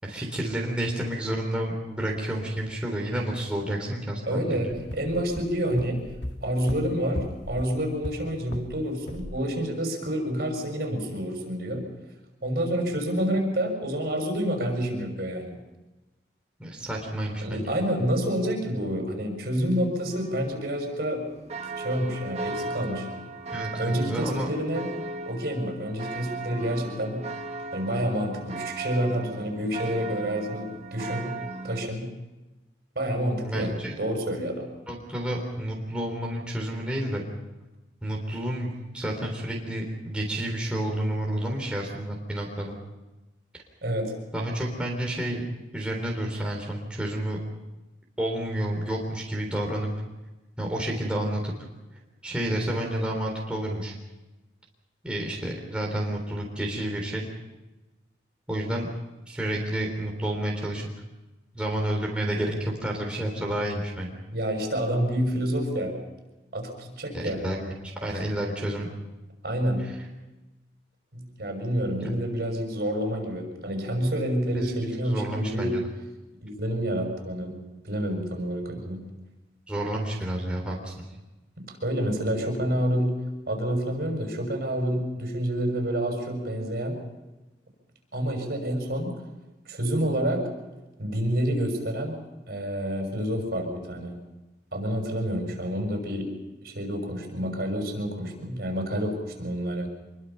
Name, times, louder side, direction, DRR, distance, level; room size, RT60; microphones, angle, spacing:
voice 1, 0.0-4.7 16.6-17.8 23.5-24.5 33.4-34.0 34.9-37.3 38.0-42.7 44.3-45.4 45.7-47.4 48.2-49.9 50.6-51.5 52.2-53.9 55.0-57.3 58.5-58.9 59.3-60.9 61.5-64.2 67.1-67.7 68.0-68.9 69.9-70.0 74.5-74.7 75.1-75.8 79.7-80.9, right 1 dB, 5° right, -2 dB, 3.7 m, -30 dB
voice 2, 4.3-6.0 6.4-11.8 12.4-15.6 17.4-21.2 21.8-23.1 23.7-24.9 25.3-27.2 27.7-31.3 31.6-32.1 32.9-34.7 43.8-44.1 64.3-65.9 66.5-67.4 69.4-69.9 71.1-75.7 76.4-77.5 77.8-79.0 81.6-83.2 83.5-87.0 88.1-89.1 89.7-90.4 91.0-92.1 92.5-94.1 94.7-96.3 96.6-99.9, equal, 55° right, 3 dB, 6.5 m, -28 dB
sound 1, 4.7-8.8 9.1-9.4, equal, 85° left, 1.9 m, -37 dB
sound 2, 20.1-31.9, right 3 dB, 35° right, 1.6 m, -37 dB
25.5 x 23.0 x 5.7 m, 1.1 s
head